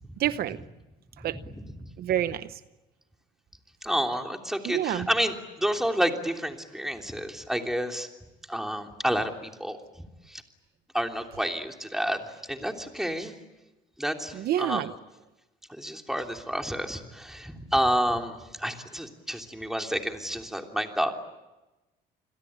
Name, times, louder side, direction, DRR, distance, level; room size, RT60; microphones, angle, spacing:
voice 1, 0.2-0.6 1.2-1.4 2.0-2.6 4.6-5.1 14.3-14.9, right 12 dB, 65° right, 13 dB, 0.9 m, -28 dB
voice 2, 3.8-8.1 8.5-9.8 10.3-10.4 10.9-12.2 12.5-13.3 14.0-14.9 15.7-21.1, equal, ahead, 3 dB, 3.2 m, -29 dB
29.0 x 21.5 x 8.9 m, 1.1 s
cardioid pair, 110°, 17 cm